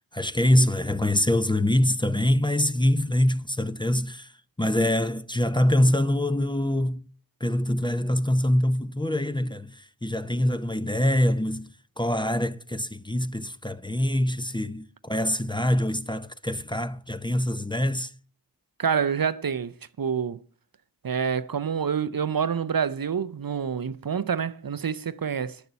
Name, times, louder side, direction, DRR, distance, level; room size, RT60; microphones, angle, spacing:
voice 1, 0.1-4.3 4.6-7.1 7.4-11.7 12.0-18.1, left 1 dB, 10° left, 0.6 m, -24 dB
voice 2, 18.8-20.4 21.0-25.6, right 7 dB, 60° right, 0.6 m, -27 dB
11.0 x 6.8 x 8.1 m
wide cardioid pair, 45°, 39 cm